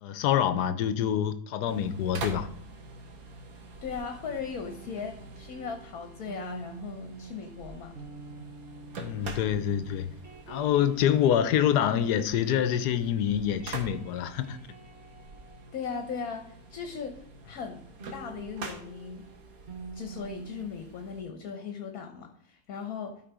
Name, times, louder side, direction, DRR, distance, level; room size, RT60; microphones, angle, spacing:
voice 1, 0.0-2.5 9.0-10.1 10.5-14.6, left 9 dB, 85° left, 1.2 m, -26 dB
sound 1, 1.7-21.2, right 3 dB, 65° right, 1.6 m, -46 dB
voice 2, 3.8-8.0 15.7-17.8 18.1-19.3 19.9-23.2, left 6 dB, 65° left, 1.4 m, -38 dB
sound 2, 4.6-13.1 13.4-16.8 18.0-20.7, right 4 dB, 45° right, 1.5 m, -48 dB
12.5 x 4.2 x 4.8 m
omnidirectional pair, 1.7 m